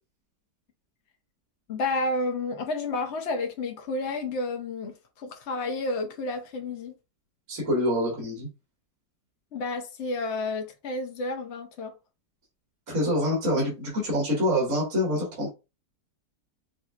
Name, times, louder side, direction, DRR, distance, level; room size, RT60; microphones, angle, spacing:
voice 1, 1.7-7.0 9.5-11.9, left 2 dB, 55° left, 0.8 m, -31 dB
voice 2, 7.5-8.5 12.9-15.5, equal, 45° right, 2.4 m, -26 dB
6.4 x 2.7 x 2.4 m
omnidirectional pair, 1.8 m